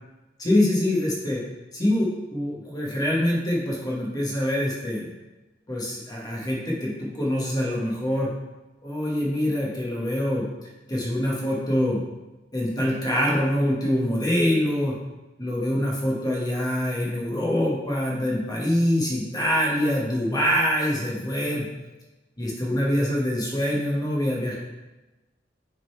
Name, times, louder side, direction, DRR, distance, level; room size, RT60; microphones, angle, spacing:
voice 1, 0.4-1.4 1.7-5.1 5.7-8.3 8.8-10.4 10.9-12.0 12.5-14.9 15.4-21.7 22.4-24.6, left 1 dB, 20° left, -4 dB, 1.3 m, -24 dB
6.3 x 3.9 x 4.5 m, 1.1 s
head